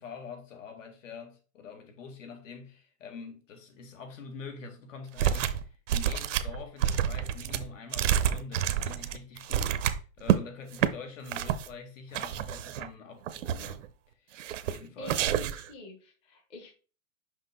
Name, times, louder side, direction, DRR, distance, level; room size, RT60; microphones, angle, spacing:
voice 1, 0.0-13.8 14.2-15.2, left 5 dB, 65° left, 1.9 m, -45 dB
sound 1, 5.2-5.6 5.9-10.4 10.7-10.9 11.3-11.7 12.1-12.9 13.3-13.9 14.4-14.8 15.1-15.7, right 10 dB, 60° right, 0.7 m, -28 dB
voice 2, 15.0-16.7, left 1 dB, 15° left, 0.8 m, -46 dB
5.7 x 5.5 x 3.6 m
supercardioid pair, 170°, 42 cm